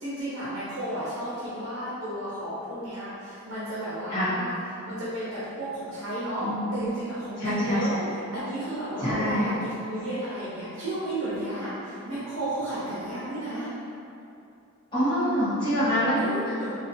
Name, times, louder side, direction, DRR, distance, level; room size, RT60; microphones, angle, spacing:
voice 1, 0.0-4.5 4.8-8.0 8.3-13.7 16.2-16.7, right 1 dB, 65° right, -10 dB, 0.7 m, -33 dB
voice 2, 7.4-8.1 9.0-9.6 14.9-16.2, equal, 20° left, -13 dB, 0.8 m, -25 dB
4.1 x 2.2 x 2.7 m, 2.7 s
head